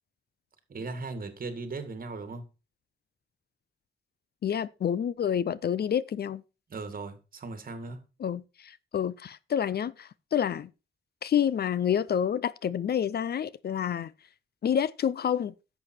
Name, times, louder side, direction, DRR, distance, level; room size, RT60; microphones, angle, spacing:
voice 1, 0.7-2.5 6.7-8.0, right 3 dB, 45° right, 1.8 m, -38 dB
voice 2, 4.4-6.4 8.2-10.7 11.2-14.1 14.6-15.5, left 9 dB, 55° left, 0.5 m, -28 dB
11.0 x 7.0 x 4.4 m
wide cardioid pair, 140°, 20 cm